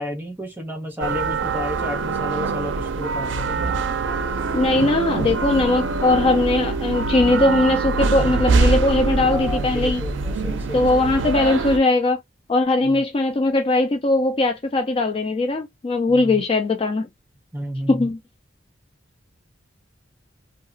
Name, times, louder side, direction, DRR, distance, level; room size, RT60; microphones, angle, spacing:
voice 1, 0.0-3.8 9.1-11.2 12.8-13.0 16.1-16.4 17.5-18.1, left 1 dB, 10° right, 0.9 m, -32 dB
sound 1, 1.0-11.8, right 3 dB, 70° right, 0.4 m, -24 dB
voice 2, 4.5-10.0 10.7-12.2 12.5-17.1 17.9-18.2, left 2 dB, 30° left, 0.3 m, -20 dB
2.8 x 2.3 x 2.5 m
head